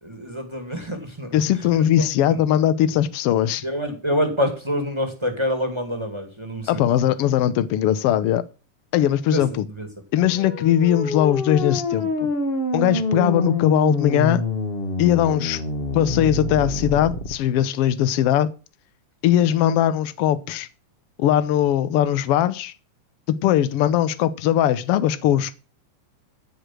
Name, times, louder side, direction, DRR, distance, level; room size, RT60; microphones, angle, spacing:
voice 1, 0.0-1.7 2.0-2.4 3.6-6.9 9.2-9.9 10.2-10.3, equal, 10° right, 1.5 m, -27 dB
voice 2, 1.3-3.6 6.7-8.4 8.9-9.6 10.1-12.3 12.7-14.4 15.0-15.6 15.9-18.5 19.2-20.7 21.2-22.7 23.3-25.5, left 11 dB, 70° left, 1.4 m, -20 dB
sound 1, 10.2-17.3, left 2 dB, 40° left, 0.8 m, -26 dB
15.0 x 5.0 x 7.6 m
omnidirectional pair, 3.5 m